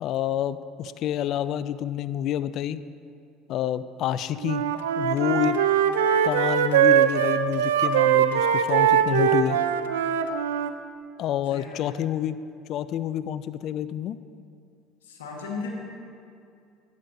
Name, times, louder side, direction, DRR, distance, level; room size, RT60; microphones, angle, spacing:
voice 1, 0.0-2.8 3.5-4.6 5.0-5.6 6.2-9.6 11.2-12.4 12.7-14.2, left 11 dB, 55° left, 15 dB, 0.3 m, -28 dB
Wind instrument woodwind instrument, 4.4-10.7, right 9 dB, 80° right, 0.4 m, -22 dB
voice 2, 11.5-12.0 15.0-15.7, left 4 dB, 85° left, -1 dB, 1.3 m, -37 dB
12.5 x 9.3 x 2.6 m, 2.4 s
hypercardioid pair, 70°, 0 cm